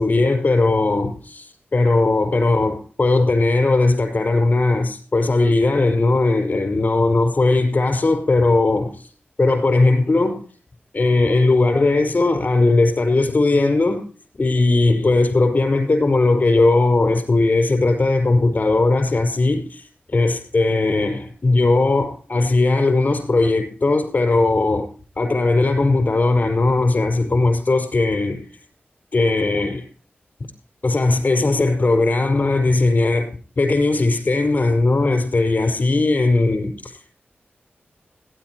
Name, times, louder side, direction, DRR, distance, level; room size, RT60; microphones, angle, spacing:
voice 1, 0.0-9.1 9.4-10.4 10.9-14.0 14.4-19.8 20.1-24.9 25.2-28.5 29.1-29.9 30.8-33.3 33.6-37.1, left 2 dB, 50° left, 6 dB, 5.2 m, -18 dB
17.5 x 10.5 x 4.7 m, 0.41 s
wide cardioid pair, 100°, 4 cm